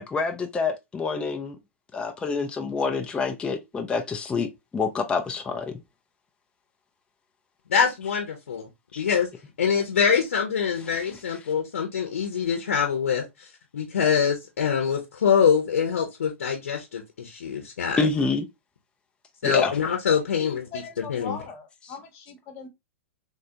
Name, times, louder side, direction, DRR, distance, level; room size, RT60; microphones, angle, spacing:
voice 1, 0.0-1.6 1.9-5.7 8.9-9.0 18.0-18.5 19.4-19.7, left 4 dB, 15° left, 0.4 m, -27 dB
voice 2, 7.7-8.6 9.0-9.3 9.6-13.2 13.7-18.1 19.4-20.7 21.1-21.4, left 7 dB, 70° left, 0.8 m, -24 dB
voice 3, 20.4-22.7, left 5 dB, 35° left, 0.9 m, -39 dB
3.3 x 2.4 x 2.7 m
figure-of-eight pair, 105°, 7 cm